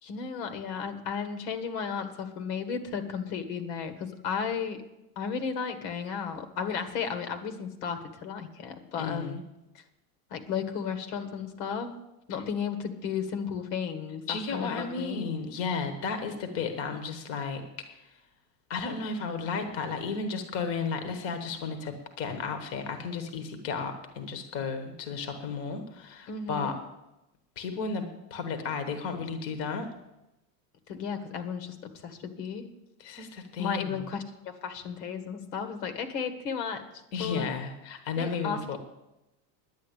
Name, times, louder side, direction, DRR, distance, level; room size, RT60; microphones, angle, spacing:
voice 1, 0.0-4.8 5.2-9.4 10.3-11.9 12.3-15.3 26.3-26.8 30.9-32.7 33.6-36.8 37.2-37.5 38.2-38.8, left 6 dB, 80° left, 8 dB, 1.8 m, -34 dB
voice 2, 9.0-9.4 14.3-18.2 18.7-26.8 27.6-29.9 33.0-34.0 37.1-38.8, left 5 dB, 30° left, 7 dB, 1.1 m, -33 dB
10.5 x 9.3 x 8.2 m, 0.93 s
supercardioid pair, 180°, 48 cm